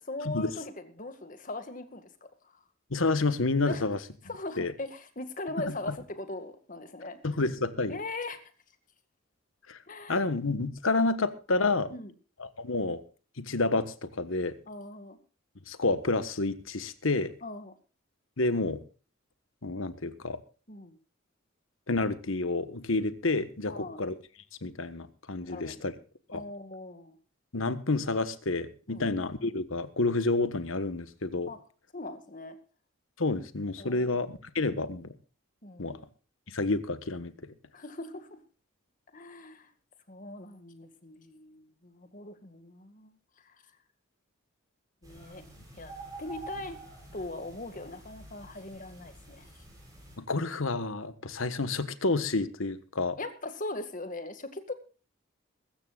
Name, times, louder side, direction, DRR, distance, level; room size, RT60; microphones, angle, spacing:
voice 1, 0.0-2.3 3.6-3.9 4.2-7.2 7.9-8.4 9.9-10.3 11.9-12.1 14.7-15.2 17.4-17.7 20.7-21.0 23.7-24.0 25.4-25.8 26.3-27.2 28.9-29.1 31.5-31.6 31.9-32.6 33.8-34.3 35.6-36.0 37.7-38.4 39.1-39.7 40.1-43.1 43.4-43.6 45.0-45.4 45.8-45.9 46.2-46.8 47.1-49.5 53.2-54.7, left 2 dB, 40° left, 2.0 m, -40 dB
voice 2, 2.9-4.0 4.6-4.7 5.7-5.8 7.2-8.0 9.7-9.8 10.1-11.9 12.4-13.0 13.4-14.5 15.7-17.3 18.4-18.8 19.6-20.4 21.9-24.1 24.6-25.9 26.3-26.4 27.5-31.5 33.2-35.1 35.8-36.0 36.5-37.3 50.2-53.2, left 3 dB, 75° left, 1.4 m, -29 dB
sound 1, 45.0-50.2, right 2 dB, 20° right, 7.1 m, -47 dB
22.5 x 13.5 x 2.4 m
head